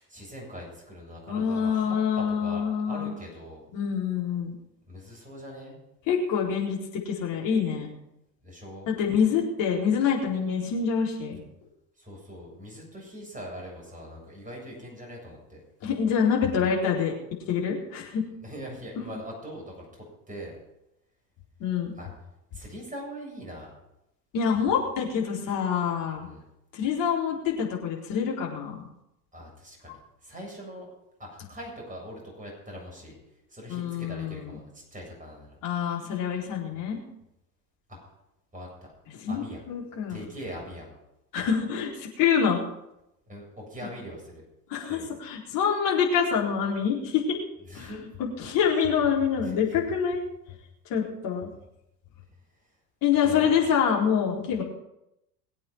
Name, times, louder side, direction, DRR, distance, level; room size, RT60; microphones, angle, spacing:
voice 1, 0.0-3.7 4.9-5.8 8.4-8.9 12.0-15.6 18.4-20.5 21.9-22.1 22.5-23.7 26.2-26.5 29.3-29.9 30.2-30.9 31.2-33.2 33.5-35.6 37.9-38.0 38.5-38.9 39.3-39.6 40.1-41.0 43.3-44.4 44.9-45.1 47.7-48.0 49.4-49.8 53.3-53.7 54.5-54.6, equal, 15° right, 0 dB, 7.8 m, -42 dB
voice 2, 1.3-3.1 3.7-4.5 6.1-7.9 8.9-11.4 15.8-17.1 17.5-18.2 19.0-19.1 21.6-21.9 24.3-26.3 26.7-28.8 33.7-34.6 35.6-37.0 39.1-40.2 41.3-42.6 44.7-47.4 47.7-47.9 48.2-50.2 50.9-51.5 53.0-54.6, left 7 dB, 40° left, -2 dB, 4.3 m, -26 dB
22.0 x 8.5 x 6.2 m, 0.85 s
figure-of-eight pair, 80°, 50 cm